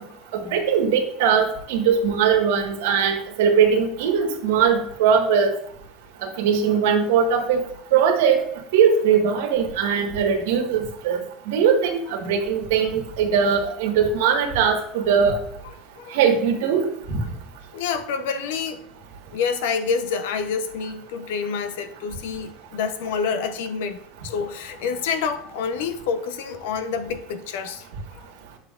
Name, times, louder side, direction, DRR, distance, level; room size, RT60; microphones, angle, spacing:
voice 1, 0.3-5.5 6.2-7.6 7.9-8.4 8.7-11.2 11.5-15.4 16.1-16.8 17.1-17.2, right 7 dB, 85° right, 1.6 m, -20 dB
voice 2, 15.6-16.2 17.7-18.8 19.3-27.9 28.1-28.3, left 6 dB, 80° left, 0.8 m, -28 dB
9.1 x 6.5 x 2.5 m
cardioid pair, 175°, 0 cm